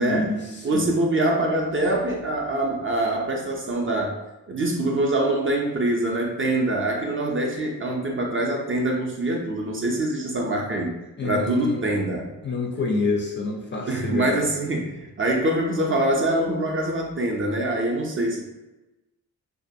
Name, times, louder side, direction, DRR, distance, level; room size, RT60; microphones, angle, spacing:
voice 1, 0.0-0.8 11.2-11.8 12.4-14.4, left 3 dB, 30° left, -1 dB, 0.4 m, -27 dB
voice 2, 0.6-4.1 4.5-10.9 11.2-12.3 13.9-18.4, right 1 dB, 35° right, 0 dB, 0.4 m, -24 dB
2.4 x 2.2 x 2.6 m, 1.0 s
wide cardioid pair, 100°, 38 cm